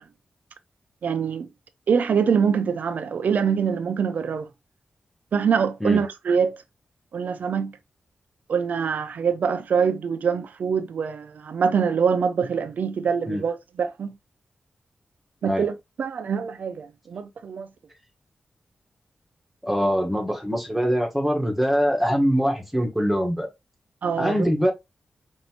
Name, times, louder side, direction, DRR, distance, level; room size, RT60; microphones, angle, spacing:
voice 1, 1.0-1.5 1.9-4.5 5.3-6.6 7.1-7.7 8.5-14.1 15.4-17.7 24.0-24.5, right 6 dB, 80° right, 0.6 m, -24 dB
voice 2, 19.6-23.5 24.2-24.7, equal, 5° right, 1.2 m, -23 dB
5.4 x 2.6 x 2.8 m
wide cardioid pair, 90°, 3 cm